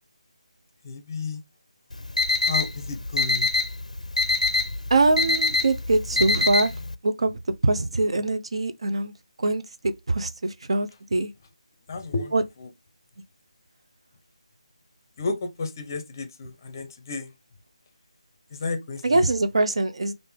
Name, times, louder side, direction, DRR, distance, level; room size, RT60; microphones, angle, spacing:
voice 1, 0.8-1.4 2.4-3.5 11.9-12.7 15.2-17.3 18.5-19.3, left 3 dB, 30° left, 0.6 m, -32 dB
Alarm, 1.9-6.9, left 3 dB, 85° left, 0.4 m, -24 dB
voice 2, 4.9-6.7 7.0-7.3 7.6-9.1 9.4-11.3 12.3-12.4 19.0-20.1, right 2 dB, 55° right, 0.5 m, -23 dB
3.2 x 2.5 x 3.4 m
figure-of-eight pair, 155°, 4 cm